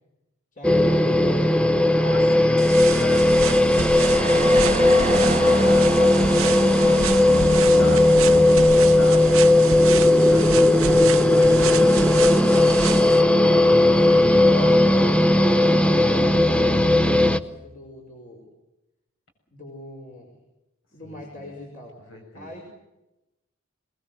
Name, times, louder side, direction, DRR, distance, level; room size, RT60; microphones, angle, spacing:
voice 1, 0.5-1.5 6.2-8.8 11.3-13.7 14.3-15.0 15.6-18.4 19.5-20.4 20.9-22.6, left 1 dB, 40° left, 0 dB, 5.4 m, -40 dB
sound 1, 0.6-17.4, left 1 dB, 5° left, 0.8 m, -17 dB
voice 2, 1.9-6.4 7.6-8.2 8.8-10.5 14.0-15.3 21.0-21.5 22.1-22.5, left 2 dB, 65° left, 4 dB, 7.4 m, -38 dB
sound 2, 2.6-13.2, right 8 dB, 80° right, 0.8 m, -31 dB
sound 3, 4.0-15.3, right 2 dB, 30° right, 1.0 m, -32 dB
23.0 x 21.0 x 7.8 m, 0.95 s
head